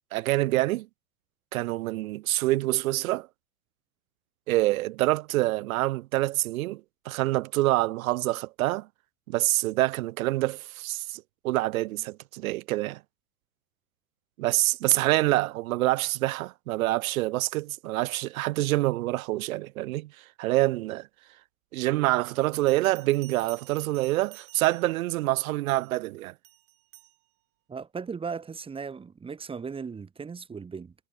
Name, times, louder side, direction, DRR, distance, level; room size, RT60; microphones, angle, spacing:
voice 1, 0.1-0.9 1.5-3.3 4.5-6.8 7.1-8.9 9.3-13.0 14.4-20.1 20.4-21.1 21.7-26.3, right 18 dB, 80° right, 0.8 m, -26 dB
Bell, 22.4-25.1 25.7-26.0 26.4-27.2, right 20 dB, 65° right, 2.6 m, -51 dB
voice 2, 27.7-30.9, right 5 dB, 15° right, 2.0 m, -37 dB
supercardioid pair, 145°, 41 cm